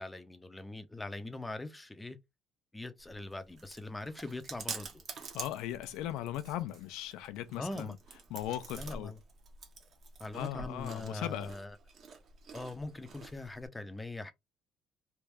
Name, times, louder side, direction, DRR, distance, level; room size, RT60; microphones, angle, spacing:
voice 1, 0.0-2.2 2.7-5.0 7.6-7.9 8.7-9.2 10.2-11.8 12.5-14.3, left 2 dB, 10° left, 0.6 m, -42 dB
Chewing mastication, 3.0-13.7, right 4 dB, 45° right, 1.0 m, -48 dB
voice 2, 5.3-8.0 8.3-9.1 10.3-11.5, left 12 dB, 85° left, 0.6 m, -38 dB
3.4 x 2.5 x 3.1 m
cardioid pair, 130°, 0 cm